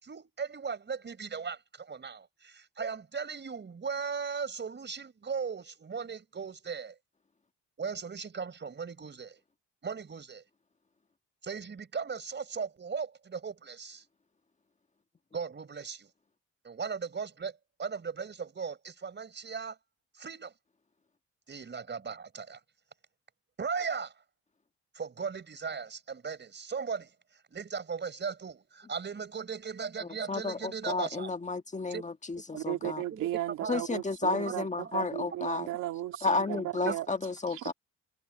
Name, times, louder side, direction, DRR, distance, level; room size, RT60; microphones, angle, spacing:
voice 1, 0.0-7.0 7.8-9.4 9.8-10.4 11.4-14.0 15.3-16.1 16.6-19.8 20.2-20.5 21.5-22.6 23.6-24.1 24.9-31.3 31.9-32.0 32.5-33.3 33.6-33.8 34.3-34.5 34.8-34.9 36.5-37.2, right 5 dB, 35° right, 4.9 m, -38 dB
voice 2, 30.3-33.0 33.7-35.7 36.2-37.7, left 3 dB, 25° left, 1.6 m, -32 dB
voice 3, 32.6-37.1 37.5-37.7, right 14 dB, 90° right, 2.2 m, -35 dB
cardioid pair, 90°, 30 cm